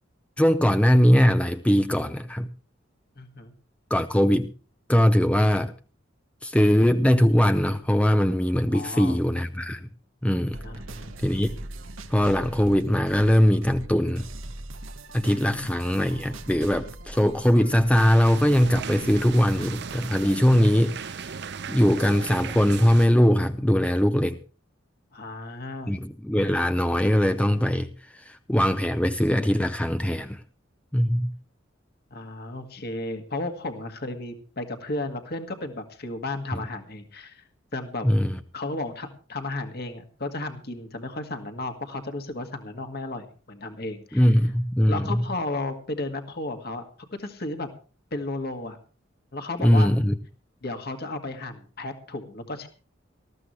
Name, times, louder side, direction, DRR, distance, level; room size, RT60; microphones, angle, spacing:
voice 1, 0.4-2.5 3.9-4.5 4.9-5.7 6.4-9.9 10.2-10.6 11.2-11.5 12.1-14.3 15.1-24.4 25.9-30.4 30.9-31.3 38.0-38.4 44.1-45.2 49.6-50.2, equal, 5° left, 9 dB, 0.6 m, -21 dB
voice 2, 3.2-3.5 8.7-9.2 10.6-11.1 15.4-15.7 25.1-26.0 32.1-37.4 37.7-38.1 38.5-44.4 44.9-47.7 48.1-48.8 49.3-49.9 50.6-52.7, left 2 dB, 50° left, 6 dB, 1.9 m, -34 dB
sound 1, 10.5-20.4, right 2 dB, 80° right, 1.5 m, -41 dB
sound 2, 17.9-23.1, right 6 dB, 55° right, 0.6 m, -37 dB
20.0 x 14.0 x 3.2 m, 0.37 s
head